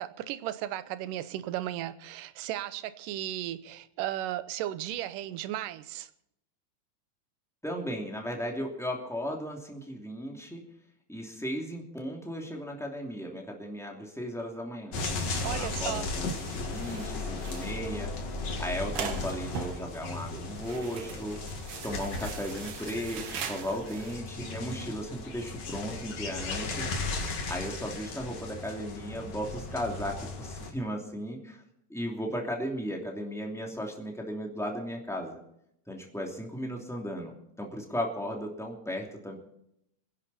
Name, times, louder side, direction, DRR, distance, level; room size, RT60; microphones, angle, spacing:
voice 1, 0.0-6.1 15.4-16.1, right 13 dB, 80° right, 13 dB, 2.4 m, -35 dB
voice 2, 7.6-10.6 11.1-15.0 15.2-18.1 18.6-21.4 21.8-26.9 27.5-31.6 31.9-35.4 35.9-39.4, equal, ahead, 0 dB, 2.2 m, -36 dB
sound 1, 14.9-30.7, left 3 dB, 50° left, 2.9 m, -36 dB
sound 2, 14.9-24.2, right 7 dB, 60° right, 1.6 m, -42 dB
25.5 x 10.5 x 4.3 m, 0.78 s
omnidirectional pair, 3.8 m